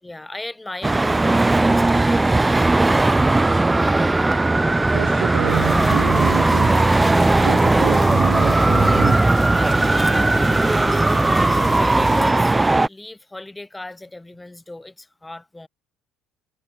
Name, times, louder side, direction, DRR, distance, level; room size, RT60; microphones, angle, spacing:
voice 1, 0.0-3.7 11.2-12.6 12.8-15.7, left 2 dB, 5° left, 2.9 m, -37 dB
Traffic noise roadway noise, 0.8-12.9, right 2 dB, 10° right, 0.8 m, -17 dB
voice 2, 4.9-6.9 7.3-9.2, right 27 dB, 90° right, 6.9 m, -28 dB
sound 1, 5.5-12.3, left 6 dB, 25° left, 1.2 m, -32 dB
cardioid pair, 160°, 0 cm